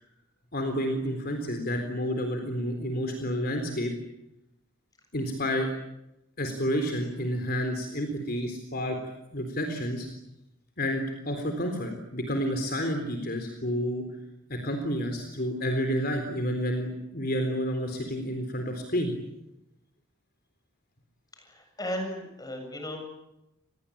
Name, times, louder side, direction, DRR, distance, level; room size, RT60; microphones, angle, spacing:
voice 1, 0.5-3.9 5.1-5.7 6.4-9.0 9.3-10.1 10.8-14.0 14.5-19.1, equal, 45° left, 5 dB, 3.9 m, -30 dB
voice 2, 21.4-23.1, left 1 dB, 20° left, 4 dB, 7.0 m, -35 dB
28.5 x 21.0 x 8.7 m, 0.91 s
head